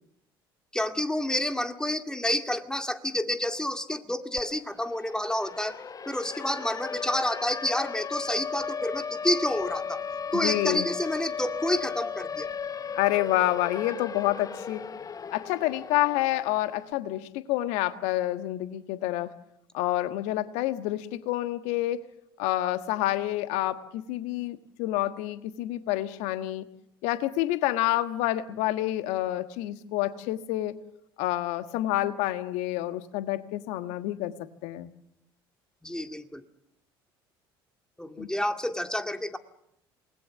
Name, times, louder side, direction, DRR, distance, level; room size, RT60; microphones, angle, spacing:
voice 1, 0.7-5.8 6.1-10.0 10.3-12.5 35.8-36.4 38.0-39.4, left 1 dB, 5° left, 7 dB, 2.1 m, -29 dB
Siren, 4.4-4.5 4.8-16.8, left 6 dB, 30° left, 0.8 m, -36 dB
voice 2, 10.3-10.9 12.9-14.8 15.3-19.3 19.7-22.0 22.4-26.6 27.0-30.7 31.2-34.3 34.6-34.9 38.2-38.3, left 15 dB, 65° left, 11 dB, 1.5 m, -28 dB
28.0 x 20.0 x 7.4 m, 0.80 s
hypercardioid pair, 65°, 12 cm